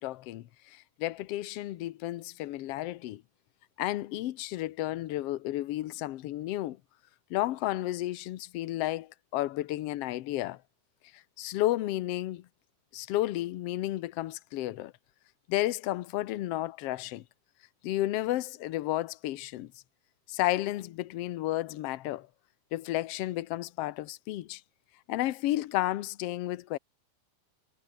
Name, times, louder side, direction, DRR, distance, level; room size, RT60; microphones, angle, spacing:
voice 1, 0.0-3.2 3.8-6.8 7.3-10.6 11.1-12.4 12.9-14.9 15.5-17.2 17.8-19.7 20.3-22.3 22.7-24.6 25.1-26.8, left 15 dB, 75° left, 1.4 m, -32 dB
omnidirectional pair, 3.8 m